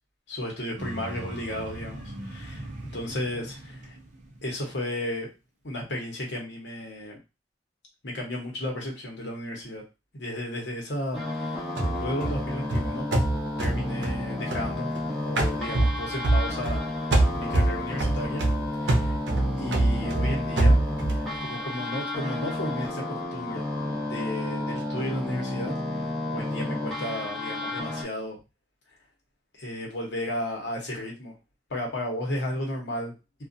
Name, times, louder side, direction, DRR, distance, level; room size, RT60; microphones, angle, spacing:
voice 1, 0.3-4.0 4.4-5.3 5.6-7.2 8.0-9.8 10.1-13.1 13.6-14.9 15.2-16.8 17.3-18.4 18.8-19.2 19.6-23.6 24.1-25.7 26.3-28.4 29.5-31.3 31.7-33.1, left 1 dB, 85° left, -1 dB, 1.0 m, -34 dB
sound 1, 0.8-4.9, right 1 dB, 45° right, 0.5 m, -40 dB
sound 2, 11.1-28.0, left 1 dB, ahead, 0.8 m, -32 dB
sound 3, 11.8-15.0 15.4-16.8 17.1-21.3, right 2 dB, 85° right, 0.6 m, -25 dB
2.5 x 2.4 x 2.6 m, 0.28 s
head